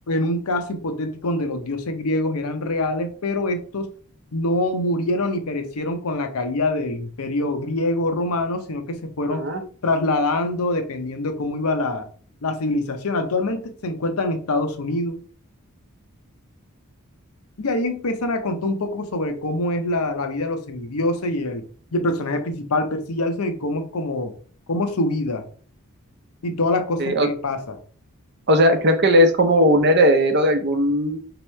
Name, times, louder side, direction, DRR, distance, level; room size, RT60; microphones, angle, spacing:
voice 1, 0.1-3.9 4.3-9.4 9.8-12.1 12.4-15.2 17.6-21.6 21.9-24.3 24.7-25.4 26.4-27.8, left 2 dB, 85° left, 6 dB, 0.7 m, -25 dB
voice 2, 9.3-9.6 27.0-27.3 28.5-31.2, equal, 50° right, 7 dB, 0.7 m, -17 dB
4.5 x 2.9 x 3.1 m, 0.43 s
head